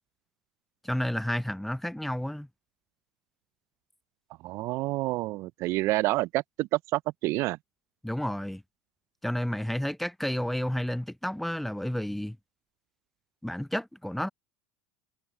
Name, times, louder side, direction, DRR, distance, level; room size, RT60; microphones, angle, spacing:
voice 1, 0.8-2.5 8.0-8.6 9.2-12.4 13.4-14.3, equal, 5° left, 0.8 m, -31 dB
voice 2, 4.4-7.6, right 19 dB, 55° right, 0.8 m, -28 dB
hypercardioid pair, 75°, 6 cm